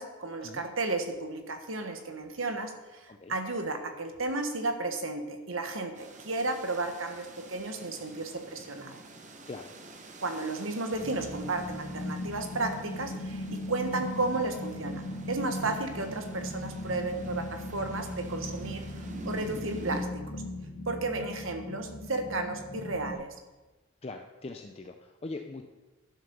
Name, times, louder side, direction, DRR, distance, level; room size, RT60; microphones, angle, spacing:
voice 1, 0.0-9.0 10.2-18.8 19.2-20.4 20.9-23.3, right 2 dB, 65° right, 6 dB, 1.4 m, -33 dB
sound 1, 5.9-20.0, right 1 dB, 35° right, 1.0 m, -47 dB
sound 2, 10.9-23.1, left 1 dB, 60° left, 2.0 m, -38 dB
voice 2, 24.0-25.6, left 3 dB, 30° left, 5 dB, 0.5 m, -41 dB
11.0 x 7.5 x 6.9 m, 1.2 s
head